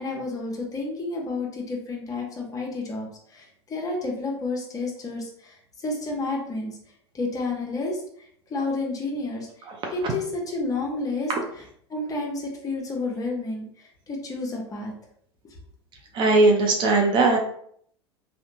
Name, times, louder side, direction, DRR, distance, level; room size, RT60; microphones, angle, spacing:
voice 1, 0.0-6.8 7.1-8.0 8.5-9.5 9.9-11.3 11.9-14.9, left 3 dB, 25° left, 0 dB, 0.8 m, -30 dB
voice 2, 16.1-17.4, right 3 dB, 35° right, 1 dB, 0.5 m, -19 dB
2.7 x 2.1 x 2.6 m, 0.64 s
figure-of-eight pair, 80°, 14 cm